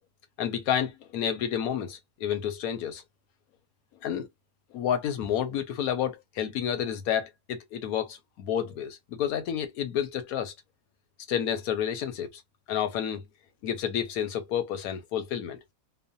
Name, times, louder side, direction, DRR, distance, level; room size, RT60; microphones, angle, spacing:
voice 1, 0.4-3.0 4.0-4.3 4.7-10.5 11.3-12.4 12.7-13.2 13.6-15.6, left 9 dB, 65° left, 1.0 m, -30 dB
3.1 x 2.0 x 2.5 m
omnidirectional pair, 1.9 m